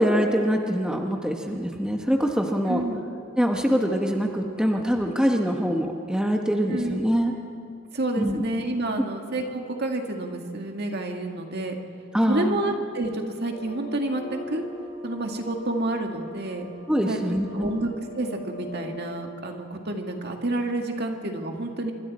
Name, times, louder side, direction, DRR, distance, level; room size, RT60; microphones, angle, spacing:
voice 1, 0.0-2.8 3.4-7.3 8.2-8.4 12.1-12.6 16.9-17.7, equal, 5° right, 2 dB, 1.2 m, -24 dB
voice 2, 2.7-3.0 6.7-7.1 7.9-11.8 12.3-14.6 15.0-16.7 17.1-17.2 17.5-21.9, right 2 dB, 55° right, 3 dB, 2.0 m, -29 dB
sound 1, 13.5-19.1, left 2 dB, 60° left, 5.9 m, -42 dB
25.5 x 24.0 x 4.3 m, 2.4 s
head